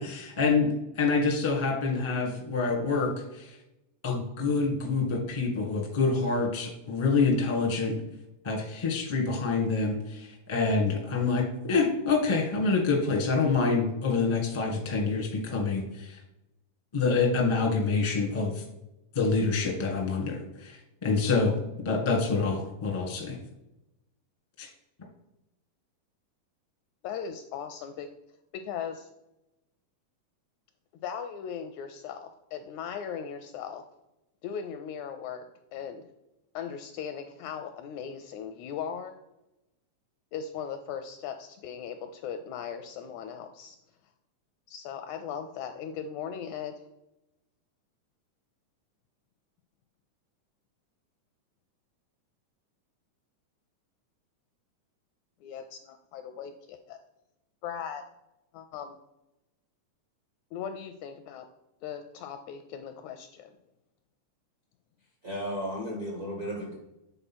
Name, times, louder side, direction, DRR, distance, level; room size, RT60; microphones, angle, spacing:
voice 1, 0.0-3.6 4.0-8.0 8.4-16.2 16.9-18.6 19.1-21.6 21.8-23.3 24.6-24.7, left 4 dB, 30° left, -1 dB, 0.5 m, -27 dB
voice 2, 27.0-28.1 28.5-29.1 31.0-33.8 34.4-35.5 35.7-36.0 36.5-39.1 40.3-43.8 44.7-46.7 55.4-57.0 57.6-58.0 58.5-59.0 60.5-61.5 61.8-63.5, left 7 dB, 80° left, 8 dB, 1.7 m, -38 dB
voice 3, 65.2-66.7, equal, 55° right, -3 dB, 0.9 m, -34 dB
8.1 x 3.8 x 6.0 m, 0.91 s
omnidirectional pair, 3.7 m